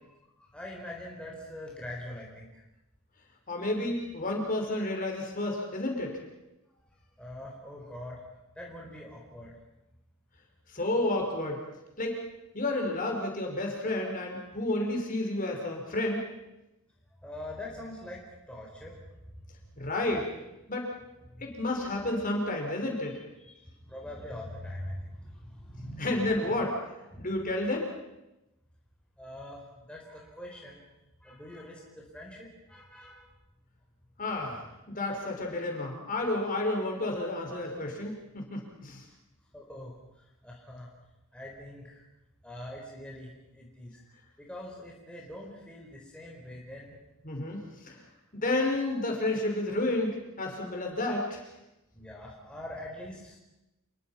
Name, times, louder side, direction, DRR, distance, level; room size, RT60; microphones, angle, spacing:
voice 1, 0.0-2.6 7.2-8.2 8.6-9.6 17.2-18.2 18.5-19.0 19.6-19.7 21.3-21.4 23.5-26.7 27.1-27.3 29.2-30.8 31.2-33.3 39.5-39.9 40.4-40.9 41.3-42.0 42.4-43.9 44.4-47.0 51.9-53.4, left 1 dB, 5° left, -3 dB, 4.4 m, -43 dB
voice 2, 3.5-6.2 10.7-11.6 12.0-12.2 12.5-16.2 19.8-20.3 20.7-20.9 21.4-23.2 26.0-26.7 27.2-27.9 34.2-34.6 34.9-39.0 47.2-48.0 48.3-51.4, left 2 dB, 40° left, 1 dB, 5.5 m, -31 dB
28.0 x 23.0 x 5.8 m, 0.94 s
head